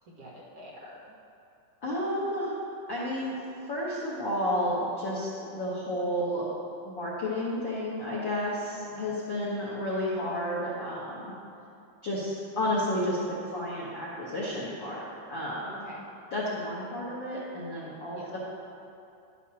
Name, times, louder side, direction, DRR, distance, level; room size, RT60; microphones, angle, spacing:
voice 1, 0.0-1.0 8.6-9.2 15.7-16.1 18.1-18.4, equal, 55° right, -7 dB, 2.0 m, -47 dB
voice 2, 1.8-2.5 2.9-3.3 3.7-6.5 6.8-11.3 12.0-15.7 16.3-18.4, left 1 dB, 90° left, -7 dB, 1.0 m, -31 dB
11.5 x 9.8 x 2.8 m, 2.7 s
omnidirectional pair, 3.9 m